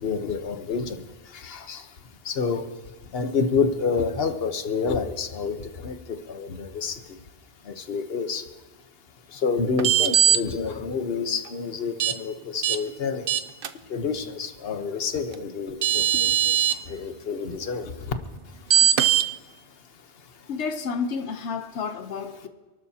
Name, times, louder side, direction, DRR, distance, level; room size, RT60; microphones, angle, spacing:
voice 1, 0.0-1.0 1.3-1.9 2.2-2.7 3.1-7.0 7.7-8.4 9.3-13.3 13.9-17.9, left 5 dB, 60° left, 8 dB, 1.2 m, -28 dB
sound 1, 9.8-10.4 12.0-12.1 12.6-12.8 13.3-13.7 15.3-15.4 15.8-16.7 18.7-19.2, right 10 dB, 60° right, 0.8 m, -20 dB
voice 2, 20.5-22.5, left 5 dB, 85° left, 7 dB, 1.1 m, -30 dB
28.0 x 12.5 x 2.8 m, 1.2 s
omnidirectional pair, 1.1 m